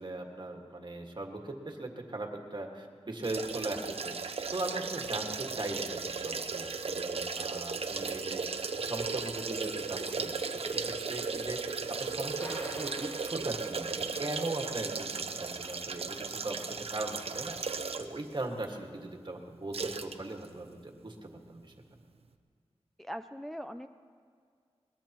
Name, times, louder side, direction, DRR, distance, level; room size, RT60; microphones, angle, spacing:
voice 1, 0.0-8.5 8.8-21.7, right 2 dB, 45° right, 2 dB, 1.8 m, -39 dB
sound 1, 3.2-18.2 18.6-18.7 19.7-20.1 20.4-20.5, right 4 dB, 65° right, 0.8 m, -36 dB
sound 2, 12.4-14.2, equal, 30° left, 1.9 m, -48 dB
voice 2, 23.0-23.9, equal, ahead, 7 dB, 0.4 m, -40 dB
21.5 x 20.5 x 3.0 m, 2.1 s
wide cardioid pair, 90°, 11 cm